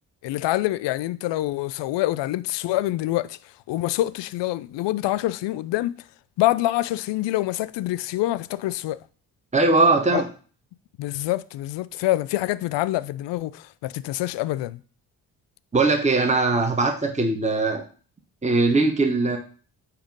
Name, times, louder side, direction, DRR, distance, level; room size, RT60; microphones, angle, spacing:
voice 1, 0.2-3.4 3.7-5.9 6.4-9.0 10.1-10.2 11.0-14.8, left 16 dB, 65° left, 0.5 m, -26 dB
voice 2, 9.5-10.3 15.7-17.8 18.4-19.4, right 3 dB, 15° right, 1.2 m, -20 dB
8.6 x 2.9 x 5.3 m
hypercardioid pair, 40°, 47 cm